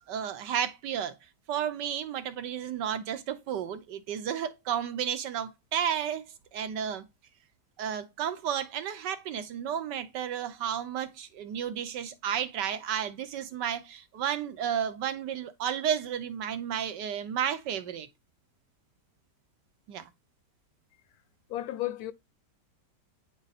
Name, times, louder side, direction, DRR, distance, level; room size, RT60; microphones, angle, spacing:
voice 1, 0.1-1.1 1.5-6.2 6.5-7.0 7.8-18.1 19.9-20.1, right 9 dB, 85° right, 1.6 m, -32 dB
voice 2, 21.5-22.1, left 14 dB, 70° left, 1.0 m, -33 dB
9.6 x 3.8 x 4.1 m
omnidirectional pair, 1.8 m